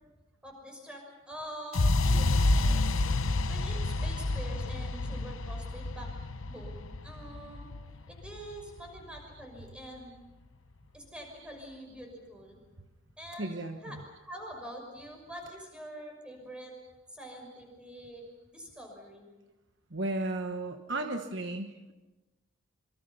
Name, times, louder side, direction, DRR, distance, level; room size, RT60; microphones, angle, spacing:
voice 1, 0.4-3.0 3.5-6.1 6.5-7.7 8.1-10.1 10.9-12.6 13.2-13.6 13.8-16.7 17.1-19.2, equal, 5° right, 2 dB, 6.1 m, -45 dB
sound 1, 1.7-9.7, left 2 dB, 70° left, 0.9 m, -29 dB
voice 2, 13.4-14.0 19.9-21.9, right 2 dB, 55° right, 5 dB, 1.3 m, -35 dB
26.5 x 24.5 x 5.7 m, 1.1 s
head